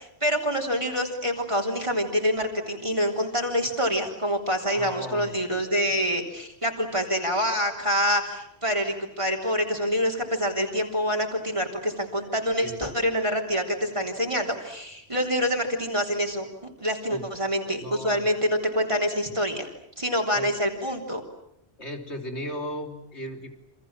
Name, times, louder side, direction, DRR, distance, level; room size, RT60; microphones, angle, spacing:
voice 1, 0.0-19.7 20.0-21.2, equal, 30° right, 1 dB, 3.6 m, -26 dB
voice 2, 4.7-5.4 12.6-12.8 17.1-17.3 17.8-18.3 20.3-20.5 21.8-23.5, equal, 85° left, 4 dB, 3.8 m, -36 dB
29.0 x 26.0 x 7.5 m, 0.77 s
omnidirectional pair, 1.1 m